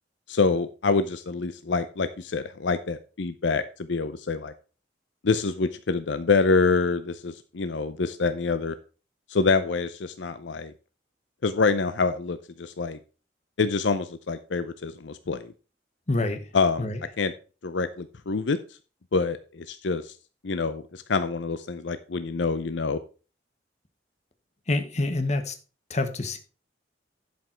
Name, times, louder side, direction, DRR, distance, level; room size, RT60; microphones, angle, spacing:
voice 1, 0.3-4.5 5.2-8.7 9.3-10.7 11.4-13.0 13.6-15.5 16.5-16.8 17.2-17.3 17.6-18.6 19.1-20.1 20.4-23.0, left 4 dB, 75° left, 11 dB, 0.6 m, -26 dB
voice 2, 16.1-16.4 16.8-17.0 24.7-25.5 25.9-26.4, left 2 dB, 40° left, 7 dB, 1.1 m, -26 dB
11.0 x 5.3 x 4.5 m, 0.35 s
head